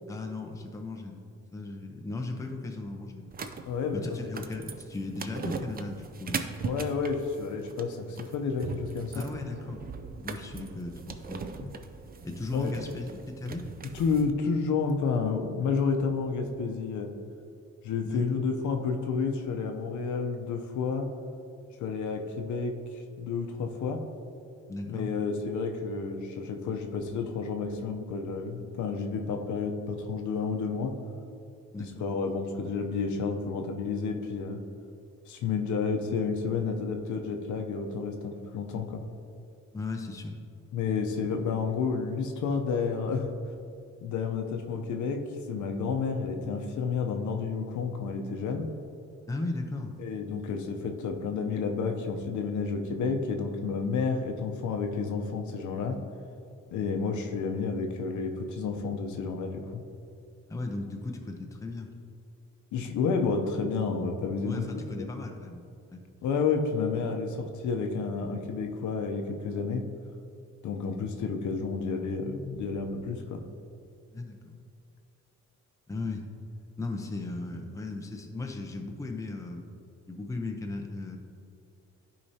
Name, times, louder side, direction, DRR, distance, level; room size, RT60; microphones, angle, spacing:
voice 1, 0.1-1.2 1.5-3.3 3.9-6.4 9.1-9.8 10.2-11.7 12.2-13.7 18.0-18.2 24.7-25.1 31.7-32.1 39.7-40.4 49.3-49.9 60.5-61.9 64.4-66.0 74.1-74.6 75.9-76.3 76.8-79.7 80.1-81.2, left 2 dB, 10° left, 3 dB, 0.6 m, -36 dB
sound 1, 3.3-14.3, right 5 dB, 30° right, 0.5 m, -40 dB
voice 2, 3.6-4.3 6.6-9.3 12.5-12.7 13.9-17.1 17.8-21.1 21.8-24.0 24.9-31.0 31.8-34.6 35.3-39.0 40.7-43.3 44.0-45.2 45.5-48.7 50.0-56.0 56.7-59.8 62.7-64.7 65.0-65.2 66.2-69.9 70.6-73.4, left 5 dB, 75° left, 4 dB, 0.7 m, -30 dB
10.5 x 4.9 x 2.8 m, 2.5 s
cardioid pair, 90°, 30 cm